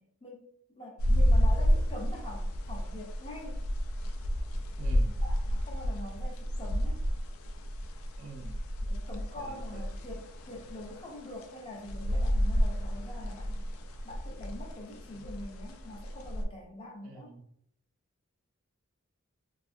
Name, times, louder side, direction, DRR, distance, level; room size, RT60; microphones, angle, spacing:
voice 1, 0.0-3.6 5.2-7.0 8.9-13.7 14.0-17.3, left 1 dB, 25° left, -2 dB, 0.5 m, -44 dB
sound 1, 1.0-16.4, equal, 80° left, 0.4 m, -30 dB
voice 2, 4.8-5.2 8.2-8.6 9.4-9.6 10.0-10.1 15.1-15.3 17.0-17.5, right 3 dB, 80° right, 3 dB, 0.5 m, -46 dB
2.5 x 2.3 x 2.5 m, 0.69 s
head